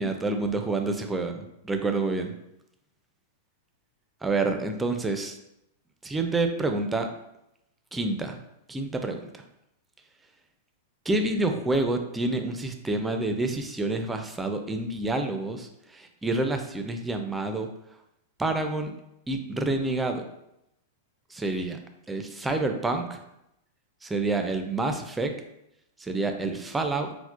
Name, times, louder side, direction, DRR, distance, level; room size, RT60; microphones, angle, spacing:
voice 1, 0.0-2.3 4.2-5.4 6.0-7.1 7.9-8.4 8.7-9.2 11.1-15.7 15.9-17.7 18.4-18.9 19.3-20.2 21.3-21.8 22.1-23.2 24.0-25.3 26.0-27.1, right 2 dB, 10° right, 5 dB, 0.4 m, -28 dB
4.3 x 2.0 x 2.3 m, 0.83 s
hypercardioid pair, 110°, 0 cm